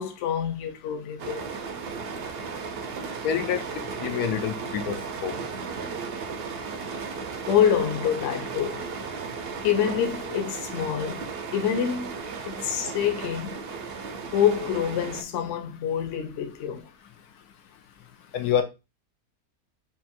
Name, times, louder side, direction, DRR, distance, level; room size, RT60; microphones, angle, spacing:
voice 1, 0.0-1.5 7.5-8.9 9.6-11.2 11.5-12.1 12.4-13.6 14.3-16.8, left 9 dB, 60° left, 1.0 m, -26 dB
sound 1, 1.2-15.2, right 5 dB, 65° right, 0.6 m, -35 dB
voice 2, 3.2-3.6 4.0-5.0 5.2-5.3 18.3-18.6, left 8 dB, 85° left, 1.2 m, -26 dB
3.6 x 2.5 x 4.2 m
omnidirectional pair, 1.6 m